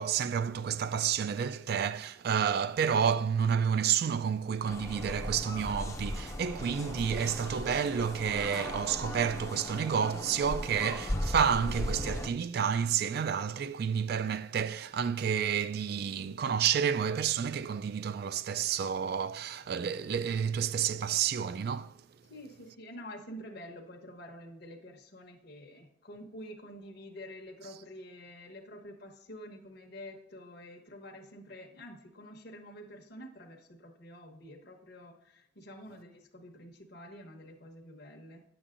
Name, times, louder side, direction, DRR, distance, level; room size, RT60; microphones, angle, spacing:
voice 1, 0.0-22.0, right 7 dB, 50° right, 0.3 m, -30 dB
sound 1, 4.6-12.3, left 1 dB, 15° left, 0.5 m, -37 dB
voice 2, 22.3-38.4, equal, 55° left, 1.0 m, -48 dB
9.8 x 7.0 x 2.5 m
head